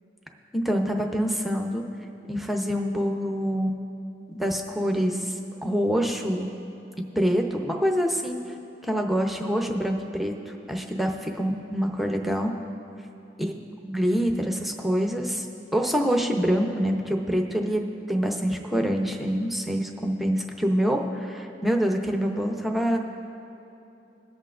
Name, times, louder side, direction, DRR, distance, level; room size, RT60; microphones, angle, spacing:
voice 1, 0.5-1.8 2.3-3.7 4.3-5.3 5.6-6.5 7.2-8.4 8.8-12.5 13.4-13.5 13.8-15.5 15.7-23.0, equal, ahead, 2 dB, 0.7 m, -26 dB
21.5 x 8.2 x 2.5 m, 2.9 s
head